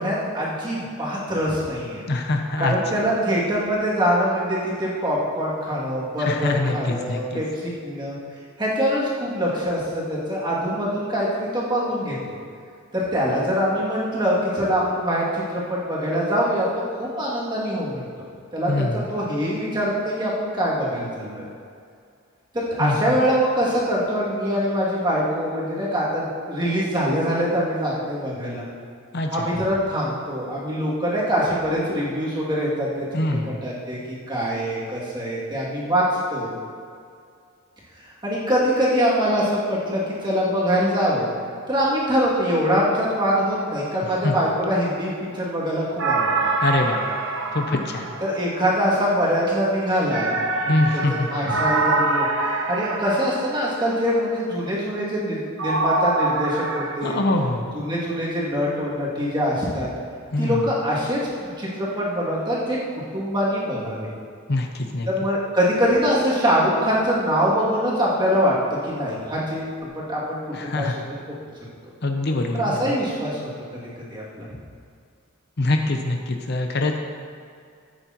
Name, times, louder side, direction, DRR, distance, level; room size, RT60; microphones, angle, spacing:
voice 1, 0.0-2.0 2.6-8.2 8.6-12.4 12.9-16.7 17.0-18.1 18.5-21.5 22.5-28.7 29.3-33.0 33.6-34.0 34.3-36.5 38.2-41.3 41.7-46.5 48.2-50.7 51.3-57.2 57.7-59.9 60.4-62.8 63.1-64.1 65.1-68.5 68.8-70.9 71.2-71.3 72.5-73.4 74.1-74.5, equal, 20° right, -7 dB, 2.5 m, -24 dB
voice 2, 2.1-2.8 6.2-7.4 18.7-19.1 22.8-23.2 29.1-29.5 33.1-33.6 44.2-44.3 46.6-47.1 47.5-48.1 50.7-51.6 57.0-57.7 60.3-60.6 64.5-65.1 70.5-71.0 72.0-73.0 75.6-77.0, left 2 dB, 50° left, 3 dB, 0.7 m, -24 dB
sound 1, 46.0-48.8 50.1-53.9 55.6-56.9, right 3 dB, 60° right, 0.9 m, -25 dB
14.5 x 8.9 x 3.0 m, 2.3 s
head